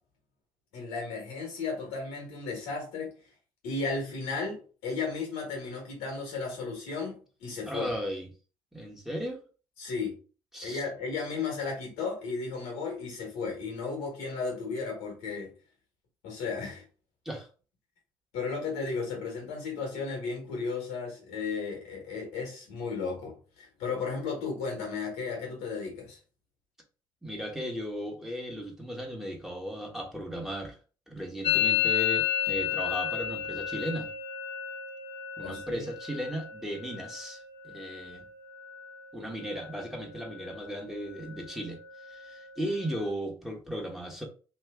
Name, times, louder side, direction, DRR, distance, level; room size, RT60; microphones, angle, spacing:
voice 1, 0.7-3.1 3.6-7.8 9.8-10.2 10.6-15.5 16.2-16.8 18.3-26.2 35.4-35.8, left 4 dB, 80° left, 1.5 m, -34 dB
voice 2, 7.7-8.3 8.7-9.4 10.5-10.8 17.2-17.5 27.2-30.8 31.1-34.1 35.4-38.3 39.1-41.8 42.1-44.2, equal, 5° right, 1.2 m, -36 dB
Musical instrument, 31.4-39.1 39.3-39.9 40.2-40.8 41.0-43.1, left 10 dB, 55° left, 0.5 m, -33 dB
3.1 x 2.8 x 3.5 m
hypercardioid pair, 50°, 12 cm